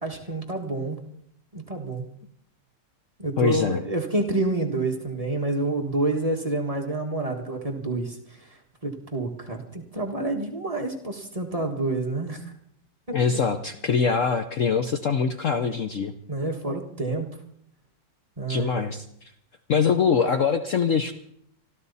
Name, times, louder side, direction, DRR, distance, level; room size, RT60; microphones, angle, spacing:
voice 1, 0.0-1.0 1.5-2.1 3.2-8.2 8.8-12.4 13.1-13.2 16.3-17.3 18.4-18.9, right 2 dB, 20° right, 2 dB, 1.7 m, -28 dB
voice 2, 3.4-3.8 13.1-16.1 18.5-19.0 19.7-21.1, left 6 dB, 55° left, 7 dB, 1.0 m, -23 dB
25.0 x 13.5 x 4.1 m, 0.71 s
omnidirectional pair, 1.9 m